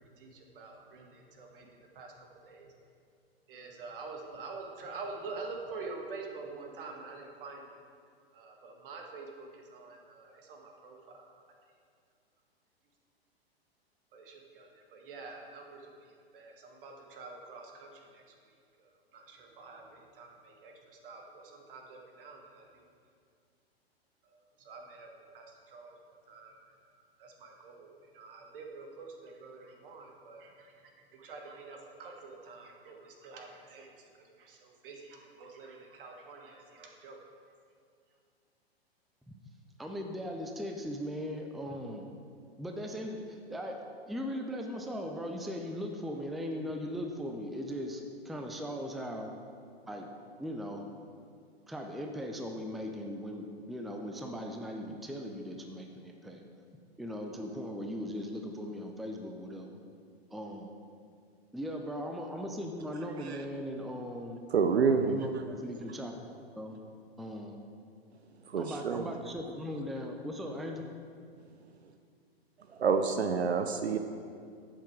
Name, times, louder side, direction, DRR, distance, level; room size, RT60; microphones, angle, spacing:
voice 1, 0.0-1.7 1.9-2.7 3.5-7.7 8.3-11.3 14.1-18.3 18.8-22.8 24.3-26.6 27.2-30.7 31.1-37.2, right 3 dB, 55° right, 2 dB, 1.7 m, -47 dB
voice 2, 39.8-42.1 42.6-43.8 44.1-49.3 49.9-50.1 50.4-50.9 51.7-56.4 57.0-59.8 60.3-60.8 61.5-64.4 65.0-66.3 66.6-66.8 67.2-67.6 68.6-70.9, equal, ahead, 2 dB, 0.5 m, -39 dB
voice 3, 64.5-65.3 68.5-69.0 72.8-74.0, right 5 dB, 80° right, 7 dB, 0.7 m, -27 dB
10.0 x 7.6 x 4.8 m, 2.3 s
figure-of-eight pair, 105°, 32 cm